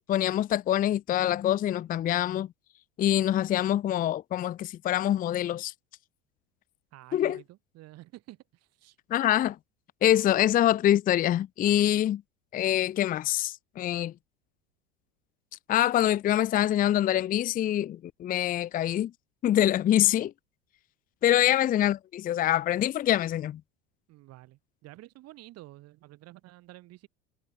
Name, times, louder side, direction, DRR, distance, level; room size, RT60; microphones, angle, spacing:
voice 1, 0.1-2.5 3.0-5.7 7.1-7.4 9.1-9.6 10.0-12.2 12.5-14.1 15.7-19.1 19.4-20.3 21.2-23.6, left 12 dB, 30° left, 0.5 m, -25 dB
voice 2, 6.9-9.0 21.4-21.5 24.1-27.1, right 17 dB, 55° right, 6.1 m, -50 dB
supercardioid pair, 105°, 30 cm